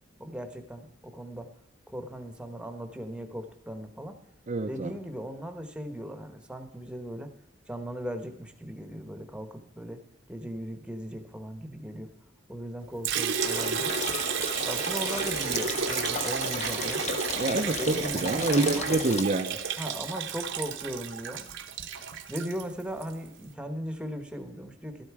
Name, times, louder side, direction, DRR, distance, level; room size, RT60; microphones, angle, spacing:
voice 1, 0.2-1.5 1.9-4.2 4.7-7.3 7.7-10.0 10.3-12.1 12.5-13.9 14.6-17.0 17.8-18.9 19.8-21.6 22.3-25.0, equal, 5° right, 6 dB, 1.1 m, -38 dB
voice 2, 4.5-4.9 17.4-19.6, right 3 dB, 35° right, 5 dB, 0.6 m, -27 dB
Liquid, 13.0-23.1, right 6 dB, 65° right, 1.0 m, -32 dB
sound 1, 13.4-19.2, left 4 dB, 35° left, 0.9 m, -35 dB
12.5 x 12.0 x 4.8 m, 0.80 s
head